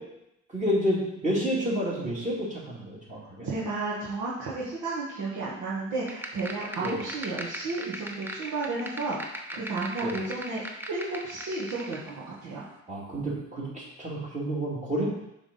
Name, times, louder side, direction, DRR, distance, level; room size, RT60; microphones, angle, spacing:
voice 1, 0.5-3.5 6.8-7.0 10.0-10.2 12.9-15.1, equal, 25° right, -5 dB, 2.8 m, -29 dB
voice 2, 3.4-10.6 10.9-12.7, right 3 dB, 80° right, -7 dB, 1.6 m, -33 dB
sound 1, 6.1-12.1, right 1 dB, 5° right, 0.8 m, -39 dB
7.1 x 3.7 x 5.5 m, 0.83 s
cardioid pair, 90°, 30 cm